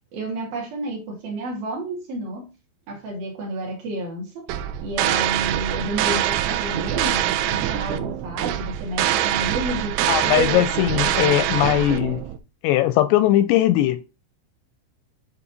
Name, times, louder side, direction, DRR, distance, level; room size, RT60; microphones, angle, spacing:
voice 1, 0.1-2.5 2.9-4.5 4.8-10.6, right 1 dB, 55° right, 3.7 m, -30 dB
sound 1, 4.5-12.4, right 12 dB, 85° right, 3.0 m, -24 dB
voice 2, 10.1-12.2 12.6-14.0, left 14 dB, 85° left, 2.6 m, -19 dB
10.0 x 4.0 x 4.1 m
omnidirectional pair, 5.4 m